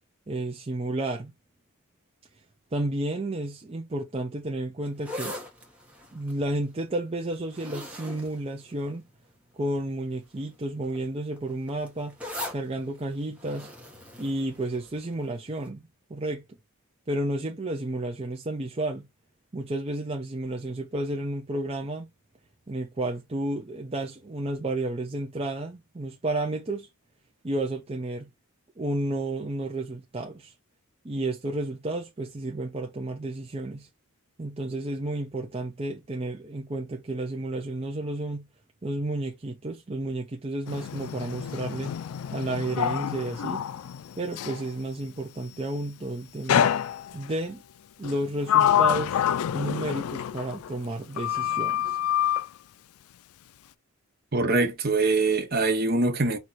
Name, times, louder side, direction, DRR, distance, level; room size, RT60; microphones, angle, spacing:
voice 1, 0.3-1.3 2.7-5.4 6.1-9.0 9.5-12.2 12.5-13.7 14.2-16.6 17.1-19.1 19.5-22.1 22.7-26.9 27.4-28.3 28.8-30.5 31.0-33.9 34.4-38.5 38.8-42.0 42.3-43.6 44.2-46.7 47.1-47.6 48.0-49.2 49.5-52.0, right 2 dB, 25° right, 0.6 m, -31 dB
sound 1, 4.9-9.3 10.0-10.3 10.6-15.2 15.6-15.7, left 1 dB, 5° right, 1.3 m, -41 dB
Sliding door, 40.7-44.7 46.5-47.4 48.0-50.9 51.2-52.5, left 10 dB, 85° left, 0.3 m, -27 dB
voice 2, 54.3-56.4, right 3 dB, 45° right, 1.1 m, -23 dB
4.5 x 2.7 x 4.0 m
head